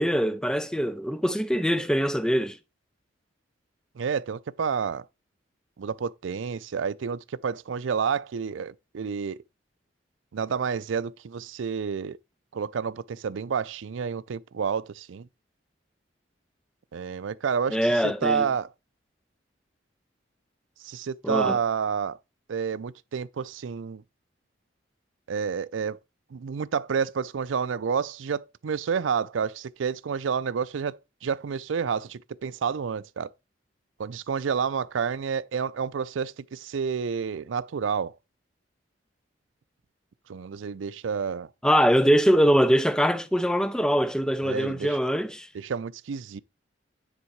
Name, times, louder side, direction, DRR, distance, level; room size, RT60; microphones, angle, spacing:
voice 1, 0.0-2.6 17.7-18.5 21.2-21.6 41.6-45.5, equal, 5° left, 0.4 m, -23 dB
voice 2, 4.0-5.1 5.8-9.4 10.3-12.2 12.5-15.3 16.9-17.8 18.2-18.7 20.8-22.2 22.5-24.0 25.3-26.0 26.3-33.3 34.0-38.1 40.3-41.5 44.4-45.0 45.5-46.4, right 6 dB, 85° right, 0.4 m, -29 dB
9.9 x 3.7 x 4.6 m
head